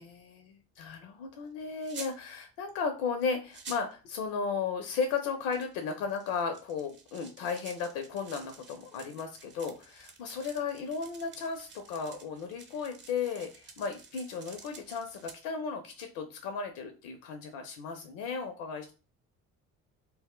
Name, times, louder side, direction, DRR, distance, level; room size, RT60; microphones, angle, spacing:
voice 1, 0.0-18.9, left 5 dB, 55° left, 5 dB, 0.5 m, -35 dB
sound 1, 1.8-2.2 3.2-3.3 3.5-3.9 5.2-15.3, right 5 dB, 30° right, 0.6 m, -50 dB
2.1 x 2.1 x 3.5 m, 0.33 s
figure-of-eight pair, 50°, 41 cm